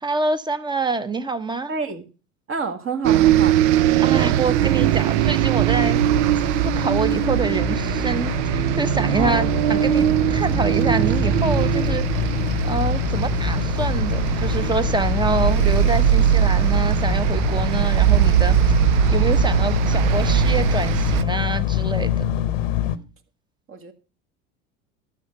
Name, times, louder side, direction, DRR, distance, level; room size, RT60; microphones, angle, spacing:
voice 1, 0.0-1.7 4.0-6.0 6.6-12.2 12.6-18.6 19.1-22.2, right 3 dB, 10° right, 1.0 m, -26 dB
voice 2, 1.7-2.1 2.5-3.6 9.2-9.5 23.7-23.9, right 5 dB, 35° right, 1.9 m, -28 dB
sound 1, 3.0-21.2, right 13 dB, 70° right, 0.6 m, -20 dB
sound 2, 5.9-23.0, left 12 dB, 90° left, 1.0 m, -25 dB
12.0 x 6.7 x 5.8 m
hypercardioid pair, 90°, 37 cm